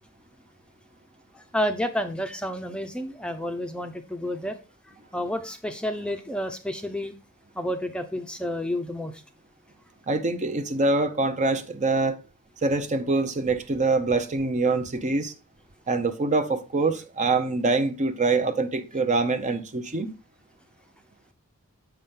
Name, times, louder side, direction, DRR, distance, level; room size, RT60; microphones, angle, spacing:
voice 1, 1.3-4.6 4.8-7.2 7.6-9.2, left 1 dB, 5° left, 0.6 m, -30 dB
voice 2, 10.1-12.2 12.6-15.3 15.9-20.1, right 3 dB, 35° right, 0.7 m, -24 dB
7.7 x 5.8 x 3.7 m
head